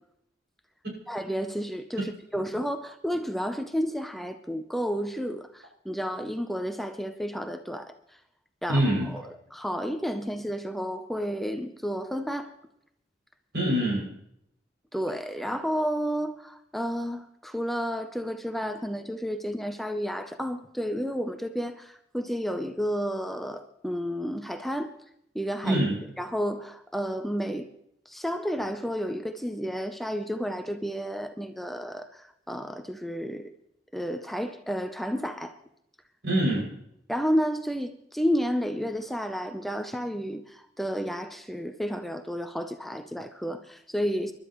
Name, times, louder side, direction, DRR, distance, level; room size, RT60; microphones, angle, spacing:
voice 1, 1.1-2.0 2.3-8.0 8.6-8.8 9.5-12.5 14.9-24.9 25.3-25.8 26.2-27.7 28.1-33.5 33.9-35.6 37.1-44.3, equal, ahead, 0.6 m, -31 dB
voice 2, 8.7-9.1 13.5-14.1 25.6-26.0 36.2-36.7, right 1 dB, 70° right, 6.5 m, -24 dB
29.0 x 12.0 x 3.1 m
head